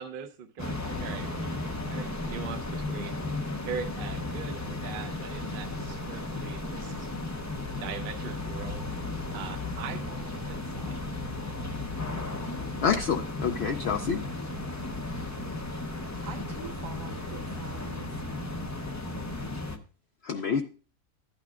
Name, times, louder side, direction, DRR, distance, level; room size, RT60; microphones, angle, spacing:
voice 1, 0.0-1.6 1.9-3.2 3.7-7.1 7.8-8.9 9.3-11.0, right 7 dB, 50° right, 0.8 m, -41 dB
sound 1, 0.6-19.8, left 2 dB, 20° left, 0.5 m, -35 dB
voice 2, 12.8-14.2 20.2-20.6, left 6 dB, 60° left, 0.8 m, -27 dB
voice 3, 16.2-18.5, right 5 dB, 70° right, 1.3 m, -45 dB
13.5 x 8.9 x 2.4 m
omnidirectional pair, 1.4 m